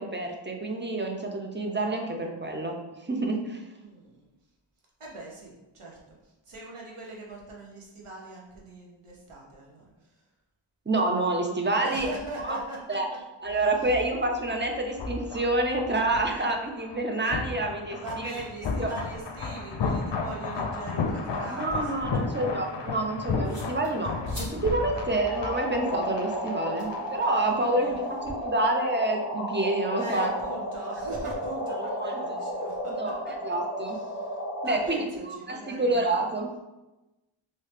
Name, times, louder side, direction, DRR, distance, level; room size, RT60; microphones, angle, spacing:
voice 1, 0.0-3.6 10.9-12.1 12.4-12.6 12.9-13.1 13.4-18.3 18.8-18.9 21.5-30.3 31.8-32.4 33.0-33.2 33.4-34.0 34.6-36.6, right 2 dB, 25° right, 2 dB, 0.5 m, -28 dB
voice 2, 3.8-4.2 5.0-10.2 11.8-13.2 13.4-13.9 18.0-21.9 24.0-24.1 24.9-25.1 27.4-28.0 30.0-33.1 33.8-36.3, right 2 dB, 85° right, -3 dB, 0.9 m, -41 dB
sound 1, 13.5-27.3 27.5-27.7, left 4 dB, 55° left, 0.5 m, -34 dB
sound 2, 21.5-28.3, equal, 60° right, 1.5 m, -47 dB
sound 3, 25.0-35.0, equal, 25° left, 1.1 m, -33 dB
3.1 x 2.7 x 3.2 m, 1.0 s
wide cardioid pair, 55°, 50 cm